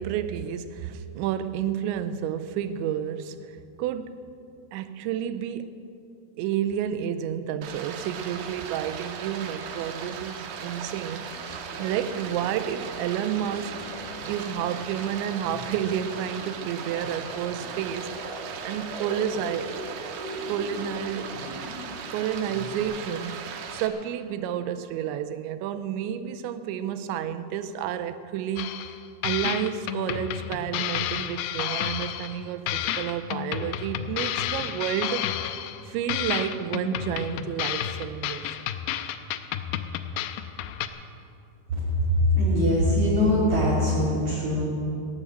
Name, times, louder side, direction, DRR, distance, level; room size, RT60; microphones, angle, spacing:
voice 1, 0.0-3.4 3.8-4.2 4.7-5.8 6.4-13.9 14.3-18.1 18.6-19.7 20.5-21.4 22.1-28.8 29.2-35.3 35.9-38.6, right 9 dB, 90° right, 11 dB, 3.0 m, -30 dB
Stream, 7.6-23.9, right 6 dB, 75° right, 3.1 m, -38 dB
sound 1, 11.2-22.8, equal, 15° left, 4.1 m, -42 dB
sound 2, 28.6-29.0 29.2-32.4 32.7-35.8 36.1-40.9, left 11 dB, 85° left, 2.6 m, -31 dB
voice 2, 42.1-44.7, left 1 dB, 45° right, -9 dB, 3.9 m, -22 dB
17.0 x 11.0 x 7.6 m, 2.6 s
omnidirectional pair, 5.1 m